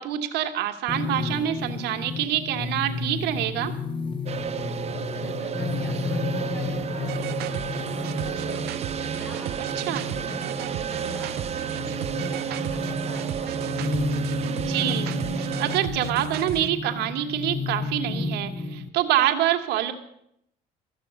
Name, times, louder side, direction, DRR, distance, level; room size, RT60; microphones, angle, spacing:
voice 1, 0.0-3.7 9.8-10.0 14.6-19.9, right 12 dB, 85° right, 5 dB, 1.5 m, -26 dB
sound 1, 0.9-18.9, left 3 dB, 30° left, 1.2 m, -32 dB
sound 2, 4.3-15.8, right 8 dB, 40° right, 0.9 m, -32 dB
voice 2, 4.6-8.7 9.2-11.9 12.3-13.7, left 2 dB, 70° left, -1 dB, 6.8 m, -45 dB
sound 3, 7.0-16.7, right 12 dB, 70° right, 0.7 m, -35 dB
14.0 x 7.0 x 9.8 m, 0.75 s
cardioid pair, 110°, 17 cm